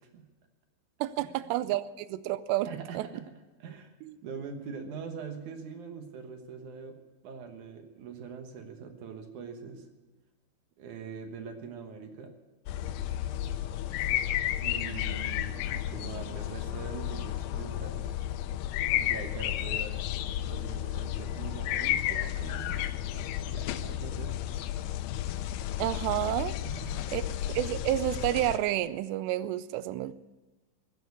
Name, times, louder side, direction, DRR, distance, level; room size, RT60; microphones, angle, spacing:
voice 1, 1.0-3.1 4.0-4.2 25.8-26.5 27.1-30.1, right 14 dB, 85° right, 16 dB, 2.8 m, -30 dB
voice 2, 2.7-3.3 3.6-3.9 4.2-7.0 7.2-9.9 10.8-12.3 14.6-18.2 19.0-20.0 20.5-24.4 26.6-27.1, right 6 dB, 65° right, 6 dB, 2.1 m, -43 dB
sound 1, 12.7-28.6, left 12 dB, 80° left, 2.5 m, -32 dB
15.0 x 10.0 x 8.2 m, 1.2 s
omnidirectional pair, 4.9 m